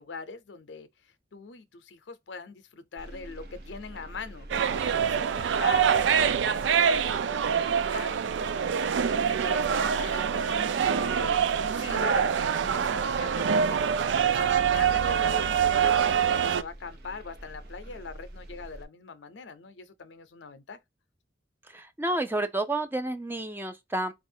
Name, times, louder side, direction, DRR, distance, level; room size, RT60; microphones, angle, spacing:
voice 1, 0.0-4.5 4.7-6.4 6.8-8.6 9.0-11.4 11.7-13.8 14.2-20.8, left 4 dB, 85° left, 0.6 m, -42 dB
sound 1, 3.0-18.9, right 1 dB, 65° right, 0.9 m, -45 dB
sound 2, 4.5-16.6, right 7 dB, 90° right, 0.4 m, -25 dB
voice 2, 21.7-24.1, right 2 dB, 10° right, 0.5 m, -30 dB
4.1 x 2.4 x 2.7 m
head